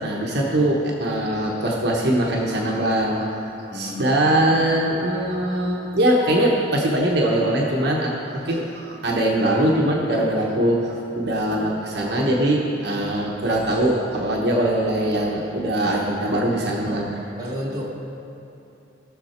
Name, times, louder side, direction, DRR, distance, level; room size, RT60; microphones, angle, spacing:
voice 1, 0.0-3.3 3.7-17.1, right 1 dB, 60° right, -2 dB, 1.0 m, -22 dB
voice 2, 3.7-4.3 17.4-17.9, left 1 dB, 20° right, -5 dB, 1.6 m, -31 dB
16.5 x 6.5 x 4.4 m, 2.9 s
head